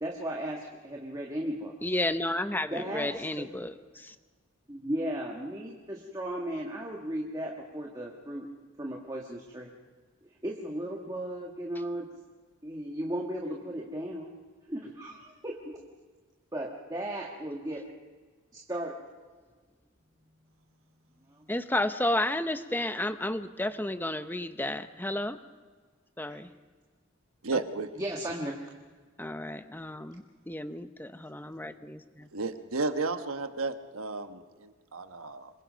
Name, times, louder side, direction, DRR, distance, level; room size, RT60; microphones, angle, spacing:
voice 1, 0.0-1.7 2.7-3.2 4.7-8.5 8.8-9.7 10.2-12.1 12.6-14.3 14.7-15.8 16.5-17.8 18.5-19.3 21.3-21.5 26.3-26.4 28.0-28.6, right 1 dB, 20° right, -1 dB, 1.5 m, -36 dB
voice 2, 1.8-4.2 21.5-25.4 26.2-26.5 27.5-27.6 29.2-32.3, left 1 dB, 10° left, 10 dB, 0.8 m, -32 dB
voice 3, 27.4-27.9 32.3-35.5, right 3 dB, 90° right, 8 dB, 1.2 m, -33 dB
26.5 x 22.5 x 5.2 m, 1.5 s
head